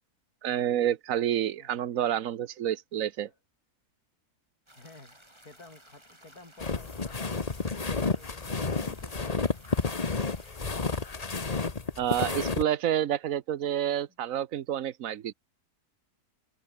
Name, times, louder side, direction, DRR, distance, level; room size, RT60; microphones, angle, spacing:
voice 1, 0.4-3.3 12.0-15.3, right 10 dB, 60° right, 1.2 m, -29 dB
sound 1, 4.7-11.2, right 1 dB, 15° right, 5.9 m, -57 dB
voice 2, 4.8-5.2 5.4-7.4 7.8-9.5, left 3 dB, 70° left, 5.9 m, -52 dB
sound 2, 6.6-12.6, left 4 dB, 25° left, 1.3 m, -31 dB
open air
omnidirectional pair, 1.7 m